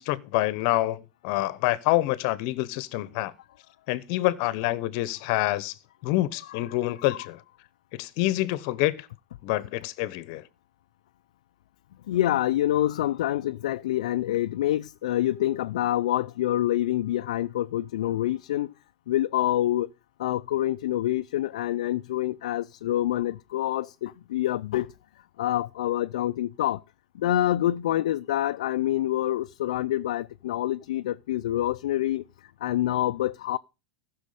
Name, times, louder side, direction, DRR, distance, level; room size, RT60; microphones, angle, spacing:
voice 1, 0.0-3.3 3.9-5.7 6.0-7.4 7.9-9.1 9.4-10.4, left 17 dB, 55° left, 1.0 m, -27 dB
voice 2, 12.1-18.7 19.1-19.9 20.2-24.9 25.4-26.8 27.2-32.2 32.6-33.6, left 13 dB, 75° left, 0.5 m, -26 dB
15.0 x 6.3 x 4.9 m
supercardioid pair, 130°, 4 cm